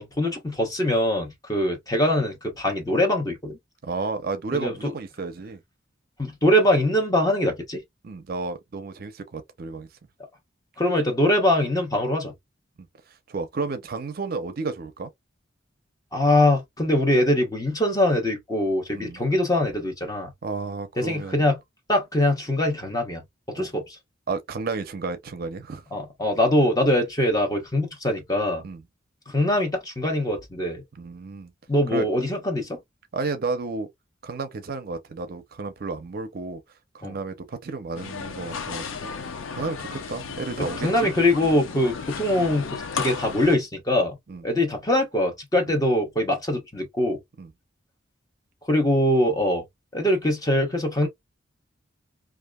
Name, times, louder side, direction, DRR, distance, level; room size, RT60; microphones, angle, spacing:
voice 1, 0.0-3.6 4.5-4.7 6.2-7.8 10.8-12.3 16.1-20.3 21.0-21.6 21.9-23.2 23.5-24.0 25.9-28.6 29.3-30.8 31.7-32.8 37.0-37.2 40.6-44.2 44.4-47.2 48.7-49.6 49.9-51.1, left 1 dB, 20° left, 0.9 m, -23 dB
voice 2, 3.8-5.6 8.0-9.9 13.3-15.1 18.9-19.2 20.4-21.4 23.5-23.7 24.3-25.8 28.6-28.8 30.9-31.5 31.9-32.1 33.1-33.9 34.2-36.6 36.9-39.1 39.6-41.1 44.3-44.4 45.7-45.8 47.4-47.5, right 4 dB, 50° right, 0.5 m, -32 dB
sound 1, 37.9-43.6, left 5 dB, 85° left, 0.5 m, -34 dB
2.8 x 2.4 x 2.2 m
head